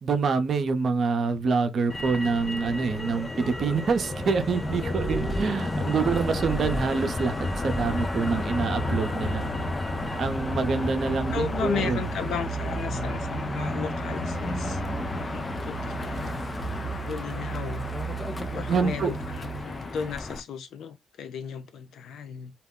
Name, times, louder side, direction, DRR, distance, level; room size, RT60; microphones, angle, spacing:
voice 1, 0.0-9.4 10.0-12.1 18.7-19.1, right 4 dB, 50° right, 0.6 m, -26 dB
Motor vehicle (road), 1.9-20.4, left 2 dB, 25° left, 0.5 m, -32 dB
sound 1, 4.7-19.6, right 6 dB, 30° right, 0.9 m, -37 dB
voice 2, 5.5-5.9 11.3-14.8 15.2-17.9 18.5-22.5, left 7 dB, 75° left, 0.5 m, -35 dB
2.3 x 2.1 x 3.6 m
cardioid pair, 90°, 0 cm